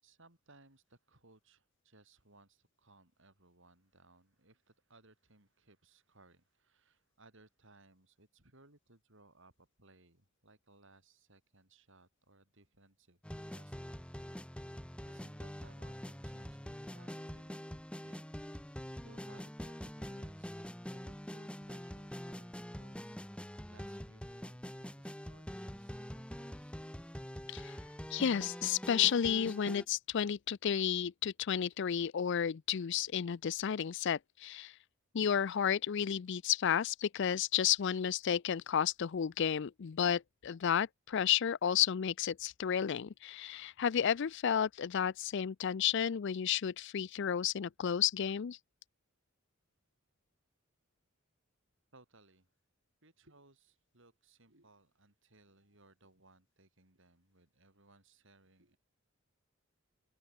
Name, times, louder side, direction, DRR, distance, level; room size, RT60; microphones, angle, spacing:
voice 1, 0.0-14.0 14.8-18.4 18.7-26.8 51.9-52.5 53.0-58.8, right 2 dB, 60° right, 6.0 m, -64 dB
sound 1, 13.2-29.9, equal, 5° left, 1.4 m, -45 dB
voice 2, 28.1-34.7 35.1-48.6, left 8 dB, 55° left, 0.4 m, -32 dB
head